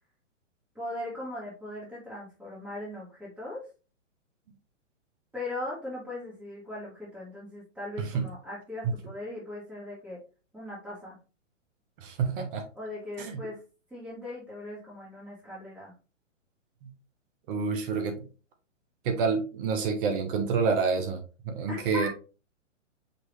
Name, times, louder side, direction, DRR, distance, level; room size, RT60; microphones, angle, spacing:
voice 1, 0.7-3.7 5.3-10.2 10.5-11.2 12.7-13.6 13.9-15.9 21.7-22.1, left 1 dB, 5° right, 1.5 m, -39 dB
voice 2, 12.0-12.6 13.2-13.4 16.8-16.9 17.5-18.3 19.0-21.2 21.4-22.1, right 5 dB, 45° right, 1.0 m, -28 dB
5.3 x 2.9 x 3.1 m
hypercardioid pair, 130°, 38 cm